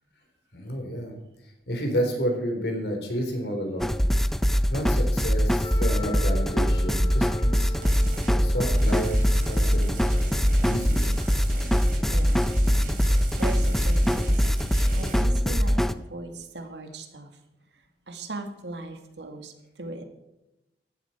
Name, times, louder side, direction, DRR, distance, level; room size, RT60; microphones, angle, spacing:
voice 1, 0.5-1.2 1.7-3.9 4.7-7.7 8.3-10.0 10.6-11.2, equal, 75° left, 2 dB, 4.0 m, -30 dB
sound 1, 3.8-15.9, equal, ahead, 0.4 m, -23 dB
Wind instrument woodwind instrument, 5.6-10.7, equal, 25° left, 1.2 m, -42 dB
sound 2, 7.8-8.3 8.7-15.2, equal, 50° right, 2.8 m, -34 dB
voice 2, 12.1-12.4 13.4-14.5 14.9-17.3 17.7-20.0, right 2 dB, 85° right, 5 dB, 2.0 m, -38 dB
15.0 x 11.5 x 4.5 m, 0.93 s
head